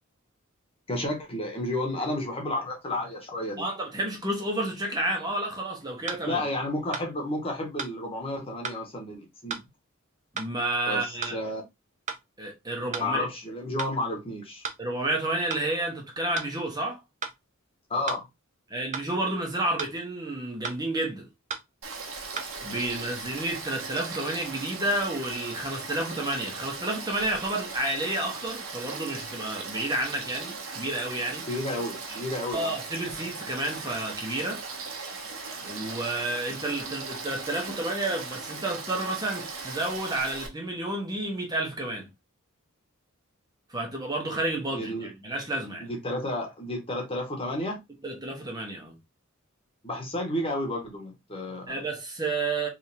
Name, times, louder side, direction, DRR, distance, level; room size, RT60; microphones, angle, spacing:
voice 1, 0.9-3.6 6.3-9.6 10.9-11.0 11.3-11.6 13.0-14.6 17.9-18.2 31.5-32.7 44.7-45.1 46.0-47.8 49.8-51.8, left 1 dB, 25° left, 1.4 m, -31 dB
voice 2, 3.6-6.4 10.3-11.4 12.4-13.3 14.8-17.0 18.7-21.3 22.6-31.4 32.1-32.2 32.5-34.6 35.6-42.1 43.7-45.9 48.0-49.0 51.7-52.7, right 1 dB, 20° right, 1.1 m, -30 dB
sound 1, 5.3-5.4 6.1-6.2 6.9-7.1 7.8-8.0 8.6-8.8 9.5-9.7 10.4-10.5 11.2-11.4 12.1-12.2 12.9-13.1 13.8-14.0 14.6-14.8 15.5-15.7 16.3-16.5 17.2-17.4 18.1-18.2 18.9-19.1 19.8-20.0 20.6-20.8 21.5-21.7 22.4-22.5, right 5 dB, 35° right, 0.6 m, -34 dB
Frog / Stream, 21.8-40.5, right 4 dB, 80° right, 1.2 m, -38 dB
3.5 x 3.5 x 2.8 m
head